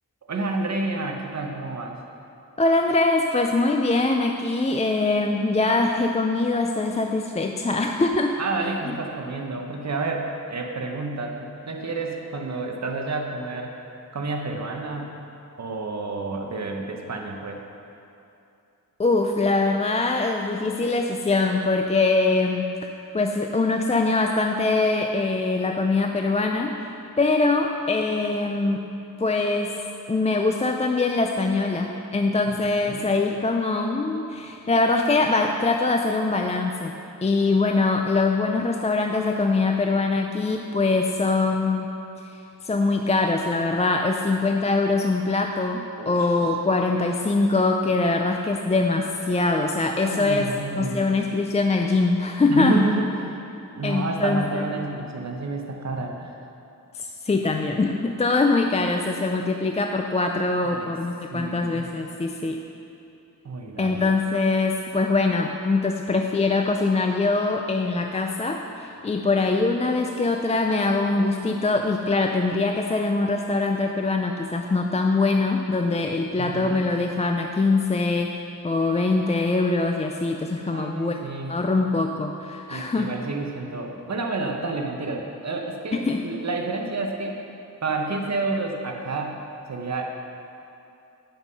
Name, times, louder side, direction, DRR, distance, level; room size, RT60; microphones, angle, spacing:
voice 1, 0.3-2.0 8.4-13.7 14.1-15.1 15.6-17.6 32.8-33.1 46.0-46.4 50.0-51.0 52.5-53.4 53.8-56.4 60.6-61.0 61.3-61.9 63.4-64.0 76.4-76.8 80.5-81.5 82.7-87.4 87.8-90.2, right 3 dB, 50° right, 1 dB, 0.9 m, -30 dB
voice 2, 2.6-8.4 8.9-9.0 19.0-22.7 23.1-26.8 27.2-28.9 29.2-29.8 30.1-37.0 37.2-41.9 42.2-50.5 50.8-52.8 53.8-54.6 56.9-62.6 63.8-78.3 78.6-81.1 81.5-83.1 85.9-86.2, left 3 dB, 20° left, 3 dB, 0.3 m, -23 dB
9.0 x 5.5 x 5.4 m, 2.7 s
wide cardioid pair, 125°, 35 cm